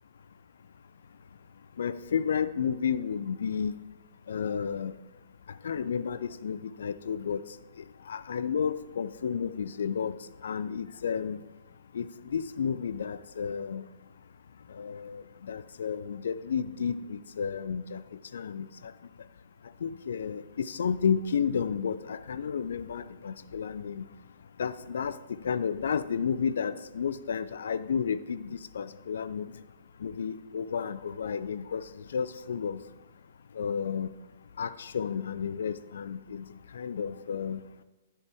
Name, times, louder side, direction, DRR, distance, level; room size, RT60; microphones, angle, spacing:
voice 1, 1.8-3.7 4.3-4.9 5.6-7.4 8.1-11.4 11.9-13.8 14.7-18.0 18.3-18.7 19.8-24.1 24.6-25.2 25.4-29.6 30.0-31.8 32.1-32.8 33.6-34.1 34.6-36.5 36.7-37.6, left 7 dB, 65° left, 15 dB, 0.3 m, -32 dB
9.8 x 7.7 x 3.5 m, 1.1 s
figure-of-eight pair, 110°, 0 cm